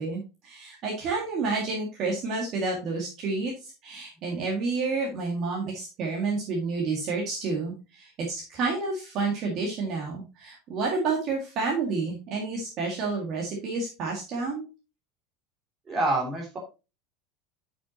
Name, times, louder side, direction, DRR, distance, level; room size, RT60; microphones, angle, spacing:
voice 1, 0.0-14.7, right 4 dB, 35° right, -1 dB, 2.0 m, -30 dB
voice 2, 15.9-16.6, right 2 dB, 15° right, 0 dB, 2.8 m, -26 dB
9.1 x 6.2 x 2.9 m, 0.29 s
supercardioid pair, 175°, 0 cm